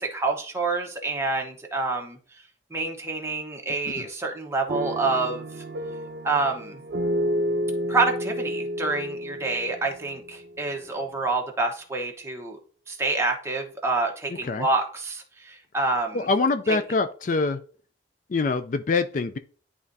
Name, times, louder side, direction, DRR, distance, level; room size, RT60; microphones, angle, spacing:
voice 1, 0.0-2.2 2.7-5.4 6.2-6.8 7.9-12.6 12.9-16.3 16.7-16.8, right 3 dB, 15° right, 1 dB, 1.1 m, -27 dB
sound 1, 4.7-10.7, equal, 75° right, 0.7 m, -30 dB
voice 2, 16.1-17.6 18.3-19.4, left 3 dB, 45° left, 10 dB, 0.4 m, -24 dB
10.5 x 3.6 x 2.7 m, 0.41 s
head